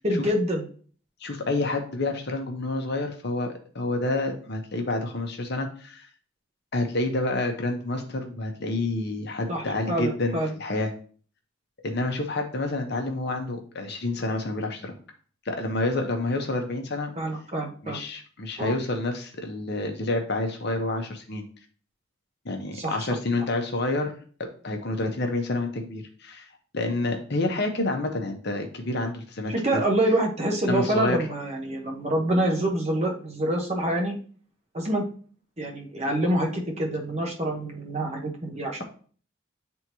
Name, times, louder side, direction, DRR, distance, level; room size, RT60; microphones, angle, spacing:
voice 1, 0.0-0.7 9.5-10.5 17.2-18.0 18.6-18.8 22.8-23.0 29.5-34.1 34.7-35.0 35.6-38.8, right 1 dB, 30° right, 1 dB, 1.0 m, -26 dB
voice 2, 1.2-6.1 6.7-10.9 11.8-14.9 15.4-17.1 17.8-21.4 22.4-24.1 24.6-26.5 26.7-29.8 30.7-31.2, left 2 dB, 50° left, 4 dB, 0.9 m, -28 dB
9.5 x 3.6 x 3.0 m, 0.43 s
head